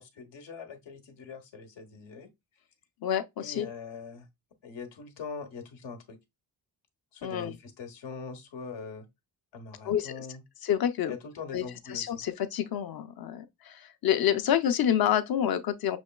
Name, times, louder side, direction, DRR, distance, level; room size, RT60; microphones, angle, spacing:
voice 1, 0.0-2.3 3.4-4.3 4.6-6.2 7.1-9.1 9.5-10.4 11.1-12.1, left 5 dB, 85° left, 1.1 m, -42 dB
voice 2, 3.0-3.7 7.2-7.5 9.8-10.3 10.6-11.1 11.5-11.6 11.9-16.0, left 10 dB, 60° left, 0.7 m, -28 dB
6.2 x 3.1 x 2.3 m
cardioid pair, 100°, 42 cm